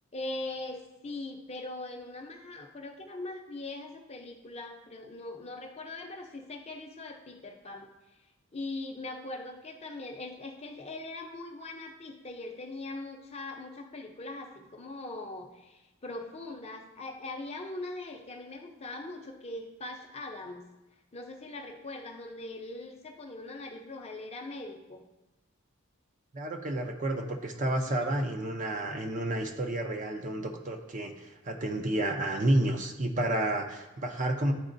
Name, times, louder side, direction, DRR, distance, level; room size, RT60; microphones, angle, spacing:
voice 1, 0.1-8.2 8.5-20.6 21.1-25.0 27.9-28.1, left 2 dB, 30° left, 3 dB, 0.6 m, -41 dB
voice 2, 26.3-34.5, right 1 dB, 35° right, 4 dB, 0.6 m, -30 dB
11.0 x 4.1 x 2.6 m, 1.1 s
head